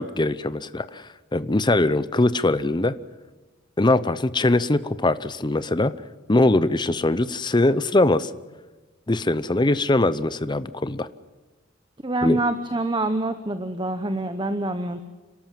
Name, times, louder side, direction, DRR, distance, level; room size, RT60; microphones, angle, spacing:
voice 1, 0.0-2.9 3.8-5.9 6.3-8.3 9.1-11.1 12.2-12.4, left 2 dB, 20° left, 15 dB, 0.7 m, -21 dB
voice 2, 12.0-15.1, right 2 dB, 25° right, 10 dB, 0.9 m, -26 dB
28.5 x 13.0 x 7.5 m, 1.2 s
head